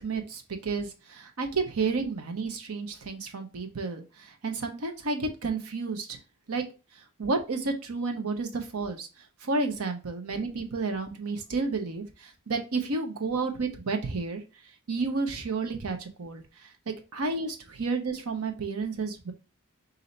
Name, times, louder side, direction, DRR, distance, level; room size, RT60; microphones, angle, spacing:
voice 1, 0.0-6.2 6.5-6.6 7.2-9.1 9.4-14.4 14.9-16.4 16.9-19.3, right 3 dB, 70° right, 5 dB, 0.8 m, -31 dB
4.0 x 2.7 x 4.3 m, 0.33 s
head